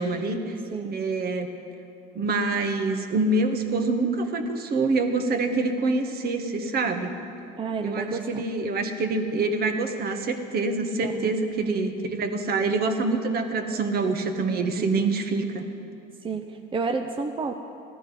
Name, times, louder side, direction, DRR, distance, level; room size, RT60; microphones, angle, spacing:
voice 1, 0.0-0.6 0.9-1.5 2.1-7.1 7.8-15.6, right 3 dB, 50° right, 6 dB, 1.4 m, -26 dB
voice 2, 7.6-8.4 11.0-11.3 14.8-15.1 16.2-17.5, right 4 dB, 25° right, 4 dB, 0.7 m, -31 dB
16.0 x 12.5 x 5.3 m, 2.7 s
supercardioid pair, 95°, 20 cm